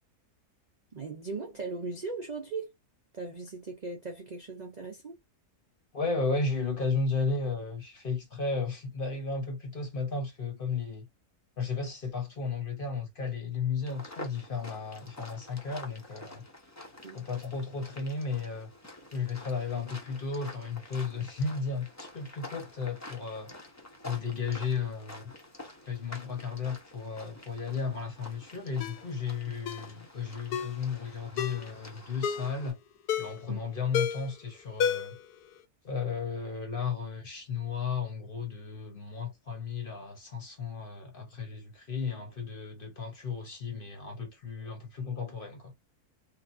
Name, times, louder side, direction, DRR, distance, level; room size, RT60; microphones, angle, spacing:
voice 1, 0.9-2.7 3.1-5.2 17.0-17.2 33.5-33.6, right 3 dB, 65° right, 0.4 m, -38 dB
voice 2, 5.9-11.1 11.6-16.4 17.1-18.7 19.1-23.5 24.0-25.3 25.9-32.8 33.2-35.2 35.8-45.7, left 5 dB, 40° left, 0.9 m, -34 dB
sound 1, 13.9-32.7, left 1 dB, 20° left, 0.5 m, -48 dB
Ringtone, 28.8-29.0 29.7-29.9 30.5-30.8 31.4-31.6 32.2-32.5 33.1-33.4 33.9-34.3 34.8-35.2 35.6-35.7, left 7 dB, 80° left, 1.1 m, -31 dB
3.7 x 2.3 x 2.5 m
omnidirectional pair, 1.7 m